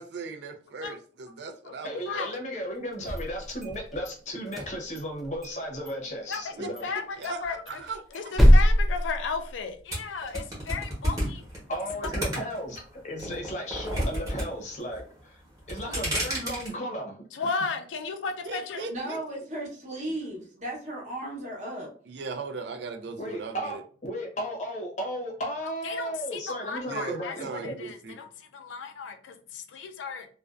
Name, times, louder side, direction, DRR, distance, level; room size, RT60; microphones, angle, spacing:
voice 1, 0.0-2.4 6.6-8.0 15.8-16.0 18.5-19.2 22.1-23.8 26.9-28.2, right 4 dB, 70° right, 0.4 m, -38 dB
voice 2, 1.8-6.9 11.7-15.4 15.7-17.5 23.2-23.8 24.0-27.7, equal, 40° left, 0.6 m, -35 dB
sound 1, 2.9-4.1 4.5-5.6 5.9-6.0 6.3-6.5 6.8-6.9 7.2-9.8, equal, ahead, 0.4 m, -23 dB
voice 3, 6.8-7.8 8.1-11.4 17.3-18.8 25.8-30.3, left 5 dB, 90° left, 0.4 m, -34 dB
sound 2, 9.9-12.8 13.2-14.5 14.7-15.2 15.6-16.7, equal, 20° right, 0.9 m, -30 dB
voice 4, 18.9-21.9, right 1 dB, 40° right, 0.8 m, -35 dB
2.4 x 2.2 x 2.3 m
head